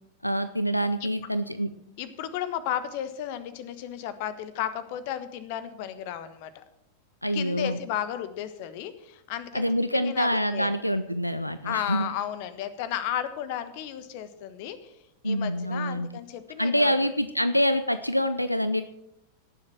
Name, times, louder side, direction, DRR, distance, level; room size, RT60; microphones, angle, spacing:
voice 1, 0.2-1.7 7.2-7.8 9.5-12.1 15.2-16.1 16.6-18.8, equal, 90° left, 12 dB, 0.6 m, -26 dB
voice 2, 2.0-6.6 7.3-10.7 11.6-14.9 15.2-16.9, left 10 dB, 50° left, 13 dB, 1.2 m, -34 dB
18.0 x 7.6 x 6.4 m, 0.82 s
figure-of-eight pair, 90°, 0 cm